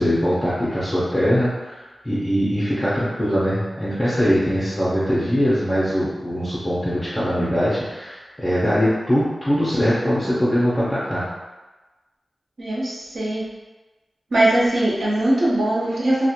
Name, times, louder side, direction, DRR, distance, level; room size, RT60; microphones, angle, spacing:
voice 1, 0.0-11.3, equal, 15° left, -10 dB, 0.5 m, -22 dB
voice 2, 12.6-13.4 14.3-16.3, right 1 dB, 65° right, -6 dB, 0.7 m, -20 dB
2.4 x 2.1 x 2.8 m, 1.2 s
wide cardioid pair, 125°, 0 cm